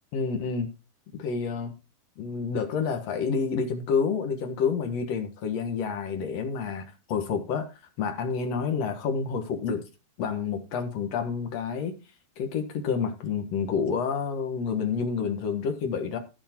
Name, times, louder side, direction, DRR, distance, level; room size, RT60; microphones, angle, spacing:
voice 1, 0.1-0.7 1.1-1.7 2.2-7.7 8.0-9.8 10.2-12.0 12.4-16.2, left 6 dB, 60° left, 1.8 m, -29 dB
15.0 x 5.2 x 4.3 m
omnidirectional pair, 4.6 m